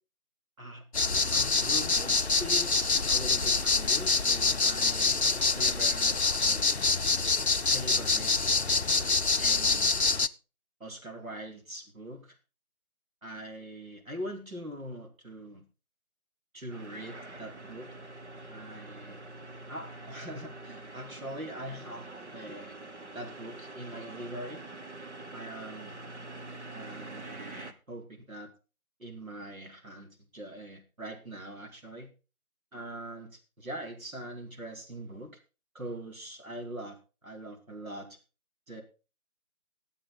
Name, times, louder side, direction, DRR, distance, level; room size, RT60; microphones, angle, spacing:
sound 1, 0.9-10.3, left 3 dB, 50° left, 0.6 m, -26 dB
voice 1, 1.3-5.2 5.5-6.9 7.7-8.3 8.7-9.0 9.4-10.0 10.8-12.4 13.2-15.6 16.5-17.9 18.5-19.2 19.7-22.1 22.3-22.8 23.1-24.6 25.3-25.9 26.7-28.5 29.0-32.1 32.7-35.3 35.7-37.0 37.2-38.2 38.7-38.8, right 1 dB, 70° right, 2 dB, 4.4 m, -42 dB
sound 2, 16.7-27.7, right 2 dB, 55° right, 1.4 m, -45 dB
20.0 x 7.7 x 4.0 m, 0.31 s
figure-of-eight pair, 165°, 42 cm